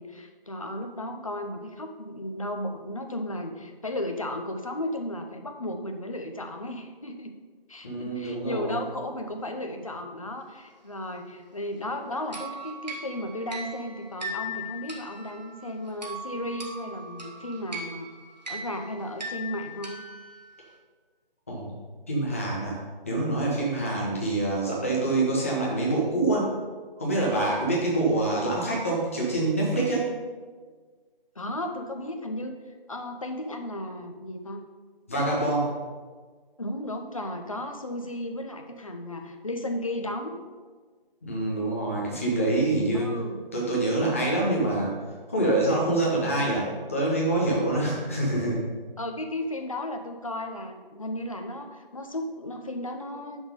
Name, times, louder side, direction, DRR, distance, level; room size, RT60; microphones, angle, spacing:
voice 1, 0.0-7.3 7.7-18.1 18.5-20.0 23.9-24.3 31.4-34.6 36.6-40.3 42.9-43.4 47.8-48.2 49.0-53.4, left 1 dB, 35° left, 5 dB, 0.7 m, -34 dB
voice 2, 7.8-8.8 21.5-21.7 22.1-22.8 23.0-26.5 27.0-30.1 35.1-35.7 41.2-43.1 43.5-44.9 45.3-48.6, right 2 dB, 15° left, -4 dB, 1.0 m, -26 dB
sound 1, 12.3-20.7, equal, 45° right, 1.2 m, -39 dB
7.0 x 6.2 x 5.3 m, 1.5 s
figure-of-eight pair, 165°, 29 cm